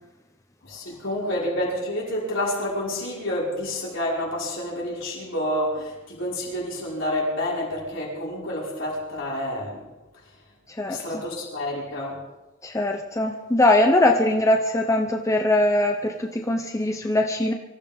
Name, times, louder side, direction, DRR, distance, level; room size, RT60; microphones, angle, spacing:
voice 1, 0.6-9.9 10.9-12.2, left 1 dB, 70° left, -5 dB, 5.5 m, -29 dB
voice 2, 10.7-11.0 12.6-17.5, left 1 dB, 15° left, 3 dB, 0.8 m, -21 dB
24.5 x 14.0 x 3.6 m, 1.1 s
head